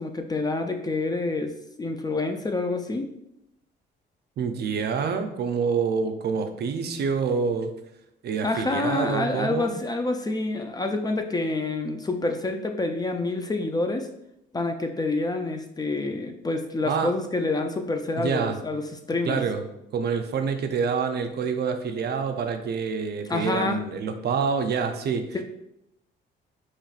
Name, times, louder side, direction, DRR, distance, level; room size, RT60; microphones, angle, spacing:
voice 1, 0.0-1.5 1.8-3.1 8.4-14.1 14.5-19.4 23.3-23.8, left 2 dB, 20° left, 5 dB, 0.4 m, -27 dB
voice 2, 4.4-7.7 8.2-9.7 16.8-17.1 18.2-18.6 19.3-19.6 19.9-25.3, right 5 dB, 55° right, 6 dB, 0.5 m, -27 dB
4.4 x 3.0 x 2.4 m, 0.80 s
cardioid pair, 90°, 20 cm